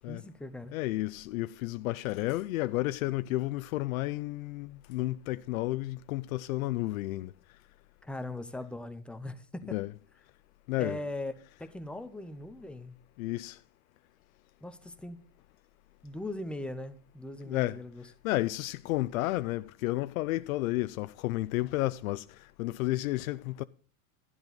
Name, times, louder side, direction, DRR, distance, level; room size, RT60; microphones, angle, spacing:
voice 1, 0.1-0.7 8.0-9.7 10.8-11.3 11.6-13.0 14.6-15.2 16.0-18.0, left 1 dB, 5° left, 0.5 m, -40 dB
voice 2, 0.7-7.3 9.7-9.9 10.7-11.0 13.2-13.6 17.5-17.8 18.2-22.2 22.6-23.6, left 18 dB, 75° left, 0.6 m, -31 dB
12.5 x 11.0 x 4.0 m
supercardioid pair, 150°, 42 cm